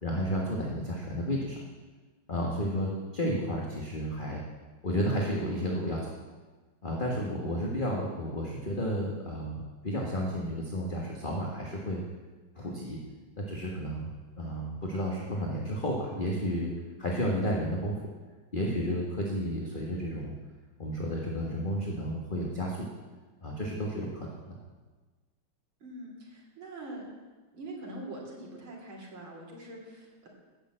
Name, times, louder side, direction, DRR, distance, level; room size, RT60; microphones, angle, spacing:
voice 1, 0.0-1.6 2.3-4.4 4.8-6.1 6.8-12.0 12.5-13.0 13.4-14.1 14.4-16.7 17.0-18.0 18.5-20.3 20.8-22.9 23.4-24.6, equal, 25° left, -2 dB, 1.5 m, -32 dB
voice 2, 25.8-27.0 27.5-30.3, right 1 dB, 85° right, -2 dB, 3.7 m, -43 dB
15.0 x 6.9 x 7.7 m, 1.3 s
omnidirectional pair, 2.2 m